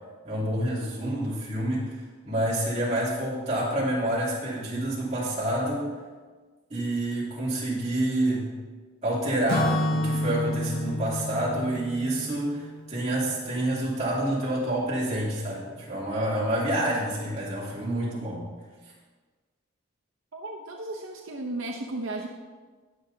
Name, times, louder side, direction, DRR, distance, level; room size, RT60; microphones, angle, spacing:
voice 1, 0.2-1.9 2.2-5.9 6.7-8.5 9.0-18.4, right 1 dB, 30° right, -7 dB, 2.9 m, -28 dB
Acoustic guitar / Strum, 9.5-13.4, left 1 dB, 85° left, 1.2 m, -30 dB
voice 2, 20.3-22.3, right 2 dB, 75° right, 1 dB, 0.8 m, -34 dB
19.0 x 6.4 x 2.8 m, 1.4 s
head